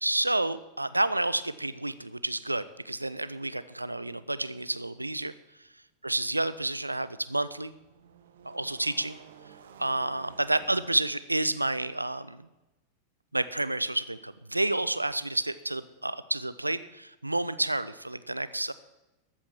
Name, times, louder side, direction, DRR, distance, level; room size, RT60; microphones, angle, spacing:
voice 1, 0.0-5.3 6.0-7.7 8.4-9.2 9.8-12.4 13.3-18.7, right 2 dB, 85° right, 15 dB, 0.6 m, -30 dB
sound 1, 7.5-10.8, right 7 dB, 60° right, 1.4 m, -52 dB
13.5 x 8.7 x 7.2 m, 1.0 s
figure-of-eight pair, 90°, 0 cm